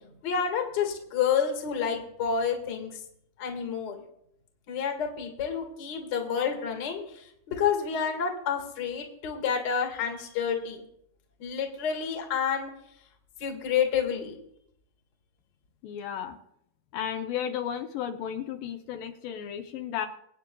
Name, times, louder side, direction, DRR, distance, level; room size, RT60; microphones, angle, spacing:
voice 1, 0.0-2.9 3.4-4.0 4.7-10.8 11.4-12.7 13.4-14.4, left 7 dB, 40° left, 3 dB, 1.7 m, -29 dB
voice 2, 15.8-16.4 16.9-20.1, left 9 dB, 80° left, 5 dB, 2.4 m, -33 dB
24.5 x 8.9 x 2.3 m, 0.74 s
omnidirectional pair, 4.1 m